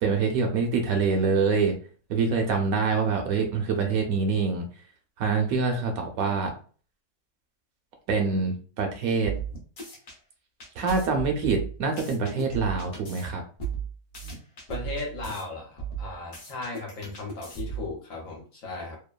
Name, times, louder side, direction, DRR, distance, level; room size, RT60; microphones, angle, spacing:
voice 1, 0.0-1.8 2.1-4.7 5.2-6.5 8.1-9.3 10.8-13.4, right 4 dB, 70° right, 3 dB, 1.0 m, -25 dB
sound 1, 9.2-10.2 10.6-13.2 13.6-15.4 15.8-17.9, right 7 dB, 40° left, 0.8 m, -36 dB
voice 2, 14.7-19.0, left 3 dB, 60° left, -1 dB, 1.1 m, -36 dB
2.9 x 2.1 x 2.3 m, 0.41 s
omnidirectional pair, 1.7 m